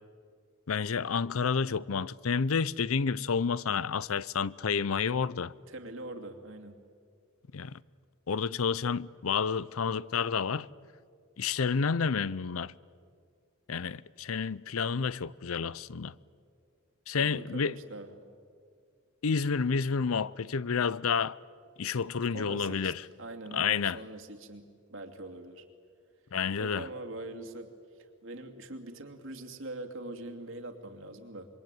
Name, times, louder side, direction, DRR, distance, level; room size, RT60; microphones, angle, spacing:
voice 1, 0.7-5.5 7.5-7.8 8.3-10.7 11.4-12.7 13.7-16.1 17.1-17.8 19.2-21.4 21.8-23.1 23.5-24.0 26.3-26.9, left 5 dB, 80° left, 0.6 m, -30 dB
voice 2, 5.7-6.8 17.1-18.2 22.3-22.9 23.2-25.7 26.6-27.7 28.2-31.5, right 2 dB, 65° right, 2.6 m, -43 dB
26.5 x 23.0 x 9.0 m
head